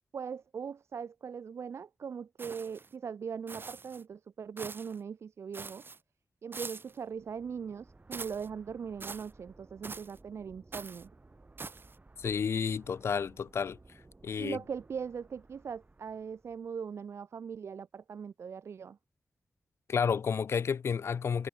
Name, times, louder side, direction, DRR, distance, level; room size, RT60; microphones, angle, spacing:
voice 1, 0.1-5.8 6.4-11.1 14.4-19.0, right 6 dB, 75° right, 0.5 m, -40 dB
sound 1, 2.4-2.9 3.5-4.0 4.6-5.0 5.5-6.0 6.5-7.0 8.1-8.5 9.0-9.3 9.8-10.2 10.7-11.1 11.6-12.0, right 4 dB, 50° right, 2.5 m, -44 dB
sound 2, 6.9-16.7, right 2 dB, 35° right, 4.9 m, -59 dB
voice 2, 12.2-13.8 14.2-14.6 19.9-21.5, left 6 dB, 70° left, 0.4 m, -31 dB
cardioid pair, 55°, 5 cm